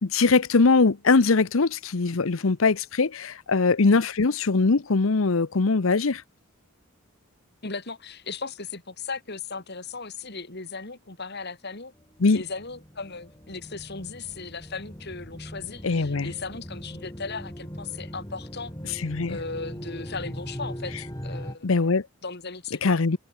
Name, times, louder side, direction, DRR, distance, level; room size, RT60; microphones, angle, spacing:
voice 1, 0.0-6.2 12.2-12.4 15.8-16.3 19.0-19.4 21.6-22.0 22.8-23.2, left 4 dB, 70° left, 0.8 m, -21 dB
voice 2, 7.6-11.9 12.3-18.7 19.3-21.7 22.2-22.8, left 4 dB, 50° left, 2.9 m, -37 dB
sound 1, 12.0-21.6, equal, 15° left, 5.4 m, -39 dB
head